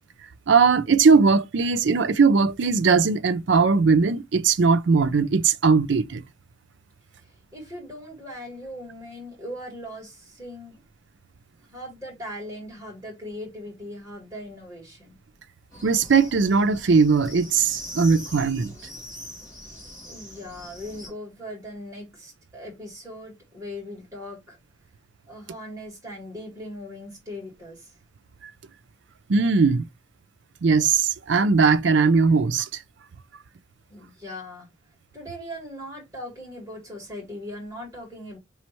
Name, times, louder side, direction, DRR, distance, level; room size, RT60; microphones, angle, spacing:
voice 1, 0.5-6.2 15.8-18.7 29.3-29.9 30.6-32.8, right 5 dB, 75° right, 0.5 m, -19 dB
voice 2, 7.1-10.8 11.6-15.2 20.0-24.6 25.3-28.0 33.9-34.7 35.1-38.4, left 1 dB, 15° right, 1.9 m, -39 dB
sound 1, 15.7-21.1, equal, 20° left, 2.0 m, -42 dB
5.2 x 3.2 x 3.0 m
head